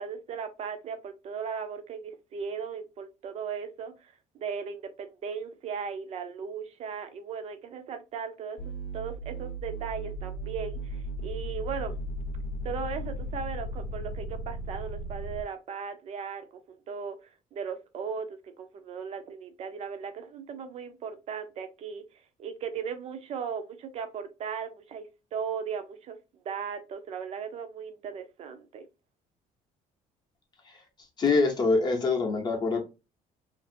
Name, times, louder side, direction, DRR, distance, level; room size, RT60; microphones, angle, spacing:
voice 1, 0.0-8.6 8.9-12.0 12.6-17.2 17.5-18.3 18.6-22.0 22.4-26.2 26.4-28.9, right 6 dB, 45° right, 0.6 m, -37 dB
sound 1, 8.6-15.4, right 1 dB, 75° left, 0.6 m, -36 dB
voice 2, 31.2-32.8, left 4 dB, 30° left, 0.7 m, -24 dB
2.9 x 2.5 x 2.6 m
cardioid pair, 145°, 15 cm